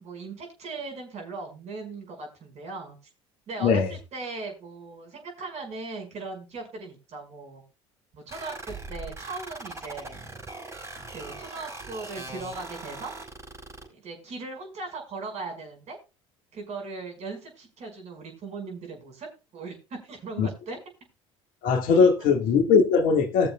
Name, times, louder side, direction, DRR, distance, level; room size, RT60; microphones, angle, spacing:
voice 1, 0.0-3.0 3.5-7.6 8.1-10.2 11.1-13.1 13.9-16.0 16.5-20.8 21.9-22.3, right 3 dB, 45° right, 5.1 m, -38 dB
sound 1, 8.3-13.9, right 2 dB, 15° right, 5.2 m, -40 dB
voice 2, 21.6-23.5, left 5 dB, 60° left, 1.7 m, -20 dB
20.5 x 7.0 x 2.2 m
hypercardioid pair, 70°, 16 cm